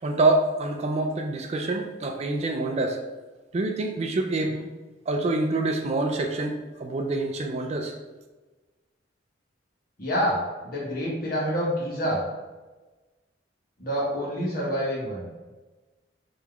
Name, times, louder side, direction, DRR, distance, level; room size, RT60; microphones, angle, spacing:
voice 1, 0.0-3.0 3.5-4.6 5.1-7.9, right 2 dB, 35° right, 4 dB, 0.3 m, -26 dB
voice 2, 10.0-12.2 13.8-15.3, equal, 50° left, -5 dB, 1.3 m, -27 dB
3.8 x 3.0 x 3.4 m, 1.2 s
head